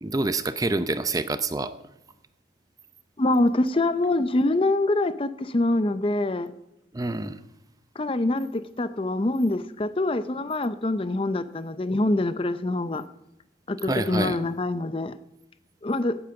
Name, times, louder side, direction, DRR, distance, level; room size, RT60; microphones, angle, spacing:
voice 1, 0.0-1.7 6.9-7.4 13.8-14.4, right 2 dB, 20° right, 12 dB, 0.6 m, -27 dB
voice 2, 3.2-6.5 8.0-13.0 13.7-15.2 15.8-16.2, left 2 dB, 30° left, 13 dB, 0.5 m, -25 dB
16.5 x 8.7 x 5.8 m, 0.88 s
head